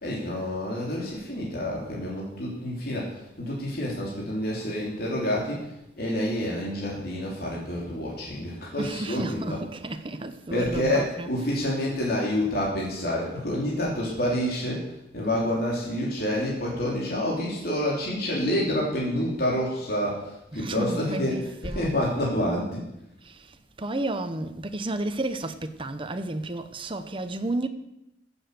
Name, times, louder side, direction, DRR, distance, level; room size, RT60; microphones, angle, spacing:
voice 1, 0.0-5.6 6.0-9.6 10.5-14.8 15.1-21.4 21.6-22.8, left 1 dB, 60° left, 3.3 m, -28 dB
voice 2, 8.8-11.6 20.5-21.9 23.2-27.7, right 2 dB, 30° right, 0.9 m, -32 dB
15.0 x 8.0 x 6.8 m
head